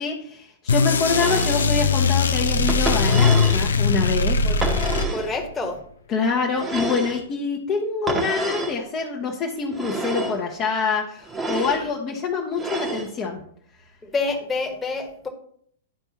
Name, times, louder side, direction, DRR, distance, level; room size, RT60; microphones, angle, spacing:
voice 1, 0.0-4.4 6.1-13.4, left 5 dB, 30° left, 0 dB, 0.9 m, -26 dB
sound 1, 0.7-5.5, left 4 dB, 75° left, 0.5 m, -20 dB
sound 2, 1.1-1.7 2.7-3.7 4.6-5.3 6.6-7.2 8.1-8.8 9.7-10.4 11.3-11.8 12.6-13.1, right 3 dB, 15° right, 1.1 m, -28 dB
voice 2, 5.1-5.8 11.5-11.9 14.0-15.3, left 3 dB, 15° left, 2 dB, 1.3 m, -28 dB
11.5 x 4.4 x 2.9 m, 0.63 s
figure-of-eight pair, 105°, 0 cm